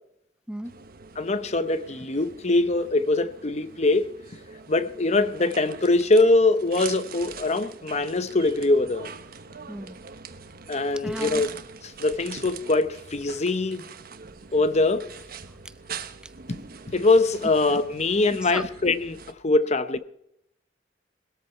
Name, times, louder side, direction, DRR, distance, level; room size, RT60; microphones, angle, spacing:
sound 1, 0.6-19.3, right 6 dB, 50° right, 1.2 m, -43 dB
voice 1, 1.2-4.1 4.7-9.1 10.7-11.5 12.0-13.8 14.5-15.1 16.5-19.2 19.4-20.0, left 2 dB, 35° left, 0.8 m, -23 dB
voice 2, 9.7-10.0 10.9-11.4 15.6-15.8 16.2-16.3 18.3-18.6, right 1 dB, 5° right, 0.5 m, -35 dB
20.5 x 13.5 x 4.5 m
head